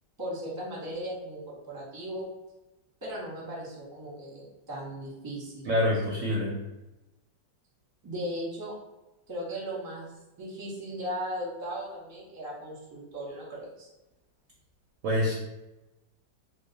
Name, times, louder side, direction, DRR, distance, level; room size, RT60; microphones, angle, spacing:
voice 1, 0.2-2.3 3.0-5.7 8.0-8.7 9.3-10.1 10.4-13.9, equal, 20° right, -5 dB, 0.6 m, -37 dB
voice 2, 5.7-6.5 15.0-15.3, left 1 dB, 65° right, -3 dB, 0.7 m, -26 dB
3.0 x 2.0 x 3.9 m, 0.99 s
omnidirectional pair, 2.0 m